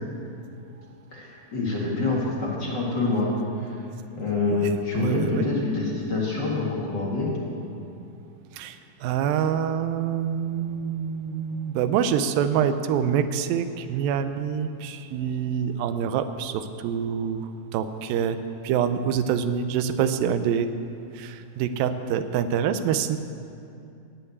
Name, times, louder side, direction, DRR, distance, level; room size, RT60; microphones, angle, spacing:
voice 1, 1.1-3.8 4.1-7.3, left 3 dB, 35° left, -4 dB, 2.0 m, -26 dB
voice 2, 4.5-5.5 8.5-18.4 18.6-20.7 21.1-23.2, right 8 dB, 80° right, 10 dB, 2.3 m, -26 dB
18.0 x 6.3 x 8.0 m, 2.6 s
omnidirectional pair, 4.2 m